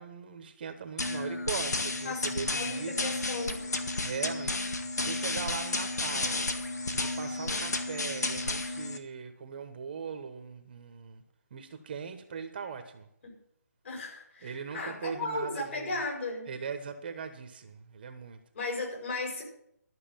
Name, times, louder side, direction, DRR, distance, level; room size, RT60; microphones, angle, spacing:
voice 1, 0.0-3.1 4.0-4.6 5.0-6.4 6.9-11.2 11.5-13.1 14.4-16.0 16.5-18.4, right 6 dB, 35° right, 8 dB, 1.1 m, -40 dB
sound 1, 1.0-9.0, left 2 dB, 80° left, 1.8 m, -32 dB
voice 2, 2.5-3.7 7.4-7.7 13.2-13.4 13.8-16.5 18.5-19.4, left 3 dB, 50° left, 1 dB, 5.5 m, -36 dB
12.5 x 6.5 x 9.1 m, 0.72 s
hypercardioid pair, 160°, 9 cm